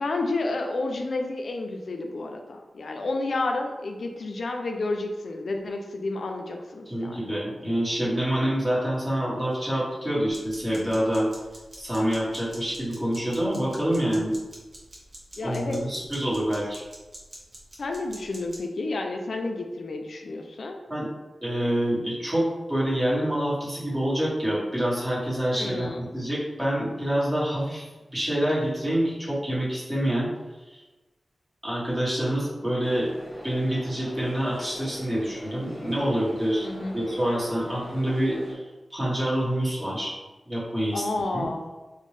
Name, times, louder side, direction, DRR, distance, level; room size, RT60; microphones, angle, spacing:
voice 1, 0.0-7.3 15.4-15.8 17.8-20.8 25.6-26.1 36.6-37.0 40.9-41.6, left 2 dB, 65° left, 3 dB, 0.3 m, -30 dB
voice 2, 6.9-11.3 11.8-14.4 15.4-16.8 20.9-21.1 21.4-30.3 30.7-30.8 31.6-33.1 33.4-36.7 36.9-38.6 38.9-40.1 40.5-41.0 41.3-41.5, right 1 dB, 20° right, -8 dB, 1.2 m, -26 dB
sound 1, 10.2-18.6, right 1 dB, 45° right, 0.9 m, -47 dB
sound 2, 32.8-38.5, equal, 15° left, 1.2 m, -43 dB
4.2 x 2.0 x 3.2 m, 1.2 s
wide cardioid pair, 130°, 0 cm